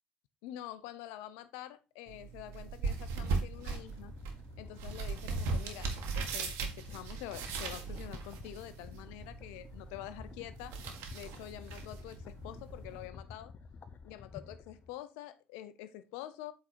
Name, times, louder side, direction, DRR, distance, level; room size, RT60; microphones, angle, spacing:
voice 1, 0.4-4.1 4.6-5.9 6.1-10.7 11.1-13.5 14.0-16.5, left 13 dB, 70° left, 0.6 m, -46 dB
sound 1, 2.1-13.1, right 4 dB, 65° right, 1.6 m, -39 dB
sound 2, 3.4-14.9, left 5 dB, 40° left, 0.9 m, -51 dB
8.2 x 3.8 x 4.5 m
hypercardioid pair, 55°, 5 cm